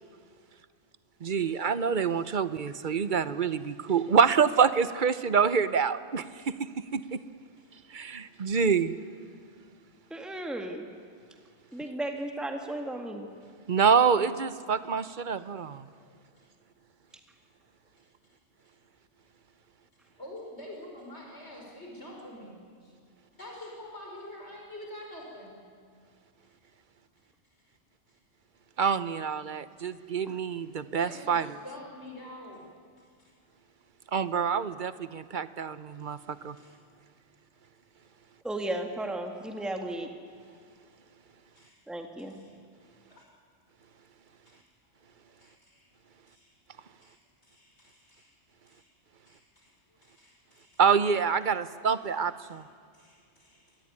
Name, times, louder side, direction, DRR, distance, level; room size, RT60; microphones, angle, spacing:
voice 1, 1.2-7.2 7.9-8.9 13.7-15.9 28.8-31.5 34.1-36.6 50.8-52.6, right 6 dB, 45° right, 14 dB, 0.9 m, -26 dB
voice 2, 10.1-10.9 11.7-13.3 30.3-30.4 38.4-40.1 41.9-42.4, right 1 dB, ahead, 4 dB, 1.9 m, -34 dB
voice 3, 15.9-16.5 18.0-18.4 19.9-22.5 22.8-22.9 23.3-25.5 31.0-32.7 33.0-33.4 36.6-36.8 37.5-37.6 41.5-41.8 42.2-42.6 43.1-43.3 44.5-44.7 45.0-45.9 46.3-46.6 47.0-48.4 48.7-48.9 49.3-49.8 50.0-50.8 52.4-52.7 52.9-53.8, left 1 dB, 60° left, -1 dB, 5.5 m, -48 dB
26.0 x 19.5 x 9.7 m, 2.2 s
omnidirectional pair, 1.3 m